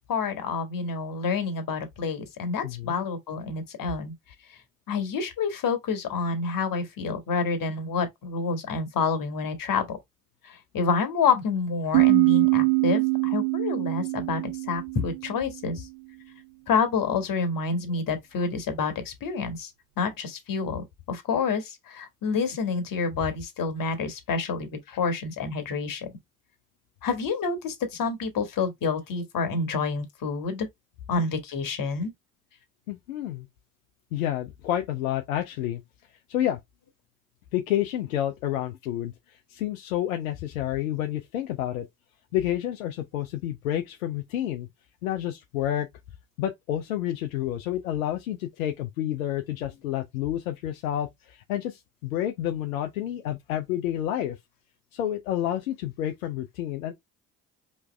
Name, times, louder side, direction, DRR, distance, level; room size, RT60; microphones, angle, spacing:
voice 1, 0.1-4.1 4.9-10.0 10.4-14.4 14.7-15.9 16.7-19.7 20.0-26.1 27.0-30.7 31.1-32.1, left 5 dB, 55° left, 1.5 m, -28 dB
voice 2, 2.6-3.1 32.9-33.5 34.1-35.8 36.3-36.6 37.5-41.9 42.3-44.7 45.0-45.9 46.4-54.4 54.9-56.9, left 12 dB, 85° left, 0.6 m, -29 dB
sound 1, 11.9-15.5, right 32 dB, 65° right, 0.5 m, -23 dB
4.6 x 3.1 x 3.2 m
hypercardioid pair, 50°, 41 cm